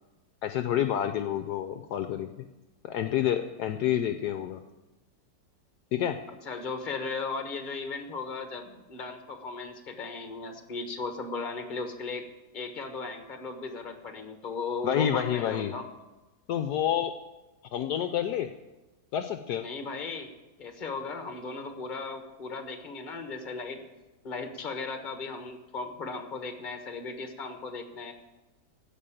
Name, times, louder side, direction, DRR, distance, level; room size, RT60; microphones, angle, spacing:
voice 1, 0.4-2.3 2.8-4.6 5.9-6.2 14.8-15.7 16.5-17.1 17.7-18.5 19.1-19.6, left 10 dB, 70° left, 8 dB, 1.1 m, -28 dB
voice 2, 6.3-12.3 12.5-15.9 19.6-20.3 20.6-23.8 24.2-28.1, left 4 dB, 30° left, 5 dB, 1.4 m, -36 dB
15.5 x 5.4 x 8.9 m, 1.1 s
omnidirectional pair, 1.9 m